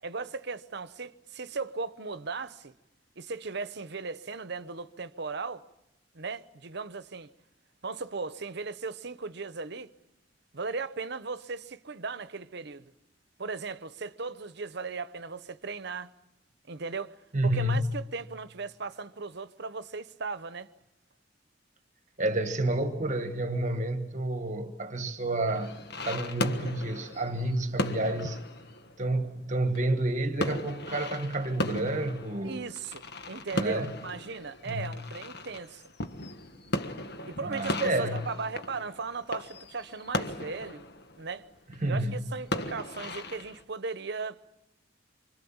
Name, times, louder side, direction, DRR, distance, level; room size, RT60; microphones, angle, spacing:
voice 1, 0.0-2.7 3.2-5.7 6.1-7.3 7.8-9.9 10.5-12.9 13.4-16.1 16.7-17.1 17.4-20.7 32.4-35.8 37.2-40.9 41.2-41.5 41.9-44.5, right 4 dB, 65° right, 0.9 m, -37 dB
voice 2, 17.3-18.0 22.2-25.8 26.0-28.4 29.0-32.6 33.5-33.9 34.7-35.0 37.4-38.2 41.8-42.3, right 1 dB, 40° right, 1.3 m, -29 dB
sound 1, 25.5-43.6, left 1 dB, 60° left, 1.5 m, -37 dB
26.0 x 25.5 x 7.2 m
head